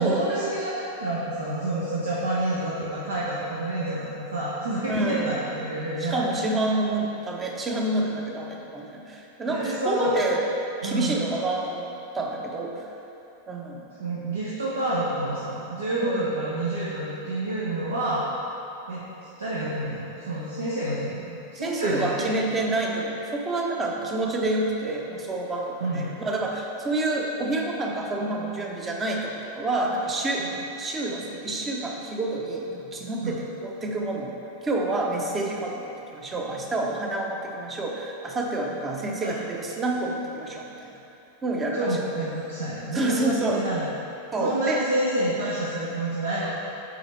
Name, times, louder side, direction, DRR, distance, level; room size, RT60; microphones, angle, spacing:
voice 1, 0.0-6.3 9.5-10.1 10.8-11.2 14.0-18.3 18.9-19.0 19.4-22.3 25.8-26.1 30.4-30.5 33.2-33.4 39.2-39.3 41.7-43.9 44.4-46.5, right 1 dB, 70° right, -8 dB, 1.0 m, -28 dB
voice 2, 4.9-5.3 6.0-10.5 10.8-11.9 12.1-12.9 13.5-13.9 16.0-16.2 21.5-30.5 30.8-34.3 34.6-40.9 41.4-41.9 42.9-43.6 44.3-44.8, right 2 dB, 20° right, 0 dB, 0.9 m, -28 dB
8.2 x 4.1 x 4.4 m, 2.9 s
figure-of-eight pair, 90°, 0 cm